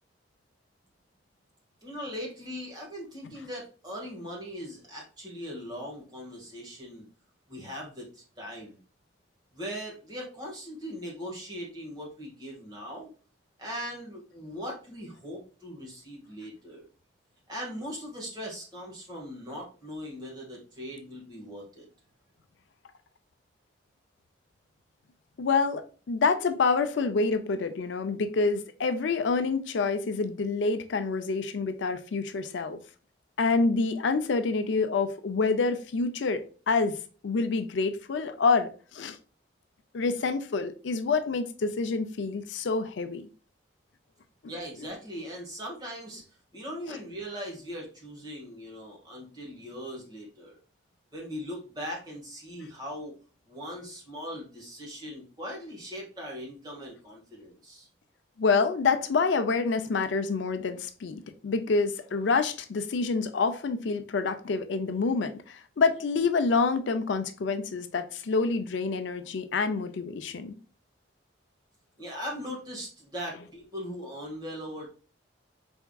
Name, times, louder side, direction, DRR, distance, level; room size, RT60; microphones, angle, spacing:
voice 1, 1.8-7.0 7.5-8.8 9.5-13.1 13.6-16.9 17.5-21.9 44.5-46.2 46.5-50.6 51.1-53.1 53.5-57.9 72.0-74.9, equal, 20° right, 1.6 m, -40 dB
voice 2, 25.4-32.8 33.4-37.0 37.2-39.2 39.9-43.3 58.4-70.6, left 4 dB, 75° left, 0.4 m, -27 dB
4.6 x 3.5 x 2.3 m
head